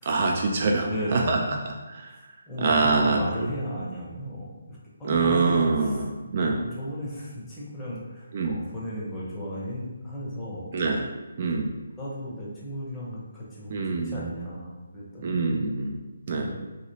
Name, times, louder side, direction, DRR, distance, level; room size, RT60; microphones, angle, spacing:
voice 1, 0.1-1.4 2.0-2.2 2.6-3.2 5.0-6.6 8.3-8.6 10.7-11.1 11.4-11.7 13.7-14.3 15.2-16.0 16.3-16.5, right 4 dB, 40° right, 1 dB, 0.3 m, -24 dB
voice 2, 0.8-1.6 2.5-6.1 6.4-10.7 12.0-15.4 16.3-16.6, equal, 10° left, -7 dB, 0.7 m, -35 dB
2.9 x 2.8 x 2.7 m, 1.2 s
hypercardioid pair, 165°, 0 cm